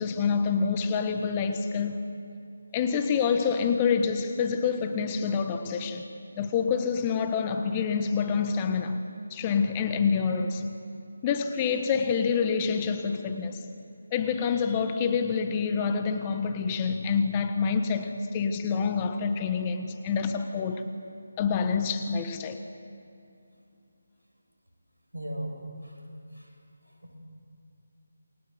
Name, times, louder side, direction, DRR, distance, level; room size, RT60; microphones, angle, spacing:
voice 1, 0.0-2.0 2.7-6.0 6.4-9.0 9.3-10.7 11.2-13.6 14.1-20.8 21.4-22.6, left 6 dB, 20° left, 8 dB, 1.4 m, -27 dB
voice 2, 25.1-26.1 26.3-26.6 26.8-27.2, right 1 dB, 90° right, 2 dB, 7.0 m, -38 dB
28.5 x 21.5 x 7.9 m, 2.6 s
figure-of-eight pair, 155°, 0 cm